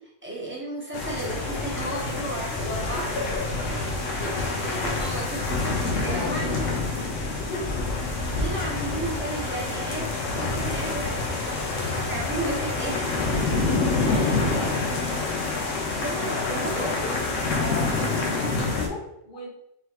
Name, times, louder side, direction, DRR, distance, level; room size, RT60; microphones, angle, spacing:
voice 1, 0.2-3.2 3.9-6.7 8.3-13.4 14.1-14.3 16.0-17.1, right 1 dB, 10° right, -5 dB, 1.0 m, -34 dB
sound 1, 0.9-18.9, left 3 dB, 85° left, 1.1 m, -27 dB
voice 2, 6.0-6.6 7.5-7.8 13.7-15.2 16.7-17.2 17.6-19.5, left 3 dB, 45° left, -2 dB, 1.0 m, -36 dB
3.9 x 3.2 x 2.9 m, 0.80 s
omnidirectional pair, 1.3 m